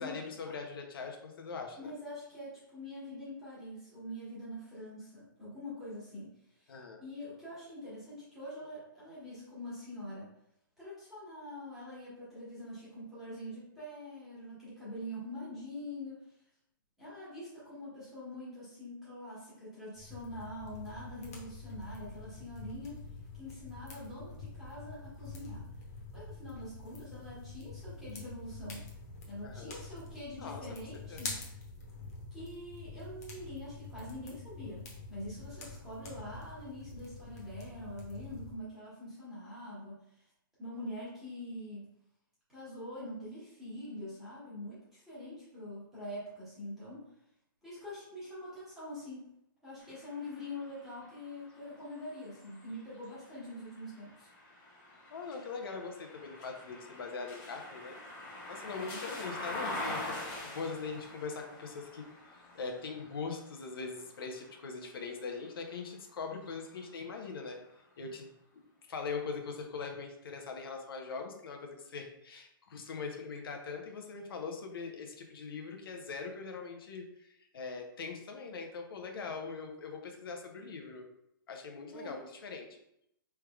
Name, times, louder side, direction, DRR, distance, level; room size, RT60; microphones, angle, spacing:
voice 1, 0.0-1.9 6.7-7.0 29.4-29.7 30.4-30.6 31.1-31.2 55.1-58.0 58.5-62.1 62.5-67.6 68.0-68.3 68.9-81.1 81.5-82.7, left 4 dB, 80° left, 3 dB, 0.8 m, -41 dB
voice 2, 1.8-10.3 10.8-16.2 17.0-23.0 23.3-25.7 26.1-28.9 29.3-31.3 32.3-40.3 40.6-41.9 42.5-47.1 47.6-49.3 49.6-54.3 81.8-82.2, left 1 dB, 5° right, -11 dB, 1.3 m, -44 dB
sound 1, 20.0-38.5, left 3 dB, 45° left, 0.9 m, -46 dB
sound 2, 49.8-65.7 66.3-67.5, left 1 dB, 20° left, 0.6 m, -45 dB
4.6 x 3.3 x 2.3 m, 0.77 s
hypercardioid pair, 175°, 12 cm